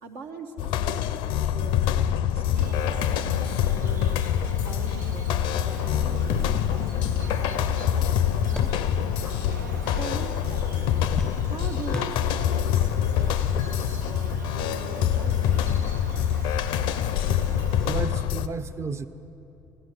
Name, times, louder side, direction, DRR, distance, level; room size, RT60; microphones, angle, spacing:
voice 1, 0.0-0.5 0.8-4.2 4.6-8.9 9.9-11.1 11.5-15.7, right 3 dB, 70° right, 1 dB, 0.9 m, -42 dB
sound 1, 0.6-18.5, left 10 dB, 65° left, 0.5 m, -25 dB
Bird vocalization bird call bird song, 2.5-18.0, right 2 dB, 90° right, 0.5 m, -39 dB
sound 2, 8.5-9.4 9.6-10.4 10.7-12.7 13.5-13.6 14.9-15.0, left 2 dB, 5° left, 0.5 m, -42 dB
voice 2, 17.8-19.1, right 4 dB, 30° right, 10 dB, 0.7 m, -33 dB
14.5 x 11.0 x 6.7 m, 2.9 s
hypercardioid pair, 55°, 9 cm